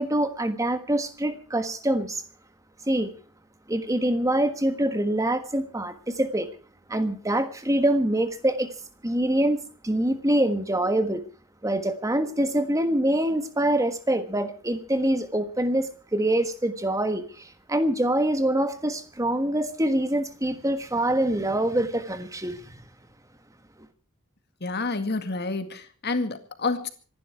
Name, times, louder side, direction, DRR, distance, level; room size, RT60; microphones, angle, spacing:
voice 1, 0.0-2.2 2.9-3.1 3.7-6.5 6.9-8.7 9.0-9.6 9.8-11.2 11.6-22.8, right 1 dB, 15° right, 1.4 m, -25 dB
voice 2, 24.6-26.9, left 3 dB, 50° left, 2.0 m, -29 dB
26.0 x 11.5 x 4.7 m
head